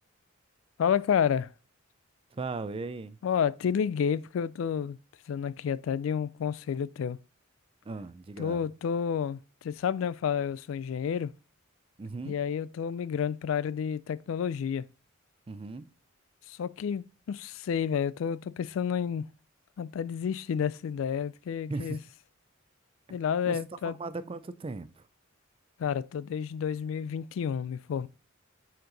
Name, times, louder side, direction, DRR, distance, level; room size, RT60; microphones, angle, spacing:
voice 1, 0.8-1.5 3.2-5.0 5.3-7.2 8.4-11.3 12.2-14.9 16.5-19.2 19.8-22.0 23.1-24.0 25.8-28.1, left 7 dB, 75° left, 0.3 m, -30 dB
voice 2, 2.3-3.2 7.9-8.6 12.0-12.4 15.5-15.9 21.7-22.0 23.5-23.6 23.8-25.1, right 3 dB, 25° right, 0.4 m, -37 dB
6.5 x 4.4 x 3.9 m
head